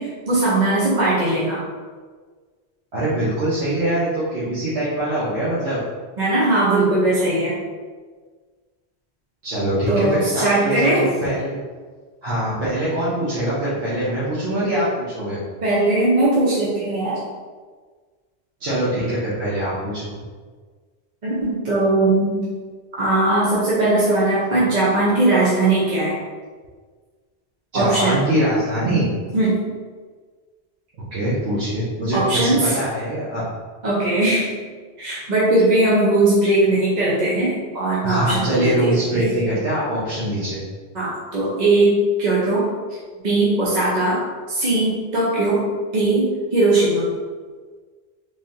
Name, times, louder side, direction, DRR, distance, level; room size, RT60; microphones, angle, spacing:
voice 1, 0.0-1.6 6.2-7.6 9.9-11.0 15.6-17.2 21.2-22.4 23.0-26.2 27.7-28.2 29.3-29.6 32.1-32.8 33.8-34.5 35.0-38.9 40.9-42.7 43.2-44.2 44.5-45.6 45.9-47.1, right 2 dB, 45° right, -7 dB, 0.8 m, -19 dB
voice 2, 2.9-5.8 9.4-11.6 12.2-15.4 18.6-20.1 27.7-29.1 31.0-33.5 38.0-40.6, right 1 dB, 90° right, -11 dB, 1.3 m, -23 dB
3.8 x 3.2 x 2.7 m, 1.5 s
omnidirectional pair, 1.1 m